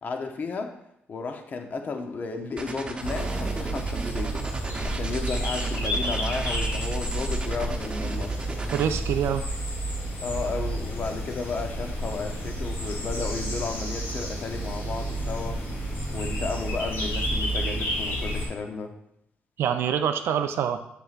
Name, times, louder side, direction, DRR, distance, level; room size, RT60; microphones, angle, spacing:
voice 1, 0.0-0.8 1.1-4.4 4.8-8.4 10.2-15.6 16.1-19.0, left 4 dB, 45° left, 5 dB, 0.7 m, -33 dB
sound 1, 2.6-8.9, right 2 dB, 25° right, 0.8 m, -36 dB
sound 2, 3.0-18.5, right 1 dB, 75° left, 2.8 m, -30 dB
voice 2, 8.7-9.5 19.6-20.8, right 9 dB, 80° right, 7 dB, 0.5 m, -25 dB
7.6 x 6.9 x 2.5 m, 0.76 s
cardioid pair, 105°, 4 cm